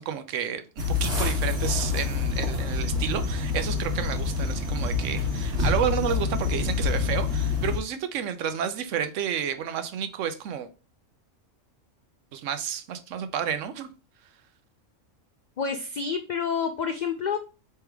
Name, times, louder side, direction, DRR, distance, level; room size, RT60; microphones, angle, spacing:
voice 1, 0.0-10.7 12.3-13.9, right 8 dB, 75° right, 0.9 m, -31 dB
sound 1, 0.8-7.8, left 4 dB, 60° right, 1.6 m, -27 dB
voice 2, 15.6-17.4, left 6 dB, 80° left, 0.4 m, -28 dB
3.5 x 3.3 x 4.5 m
omnidirectional pair, 1.3 m